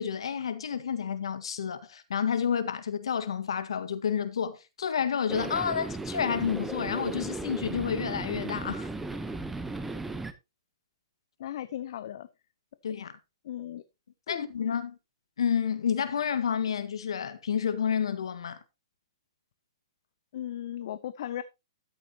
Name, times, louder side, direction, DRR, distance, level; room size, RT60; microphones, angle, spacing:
voice 1, 0.0-8.9 12.8-13.2 14.3-15.0 15.4-18.6, left 7 dB, 80° left, 1.7 m, -30 dB
sound 1, 5.3-10.3, right 2 dB, 5° right, 0.9 m, -36 dB
voice 2, 11.4-12.3 13.4-13.8 14.3-14.5 20.3-21.4, left 11 dB, 60° left, 0.7 m, -36 dB
13.0 x 8.0 x 2.9 m
hypercardioid pair, 140°, 3 cm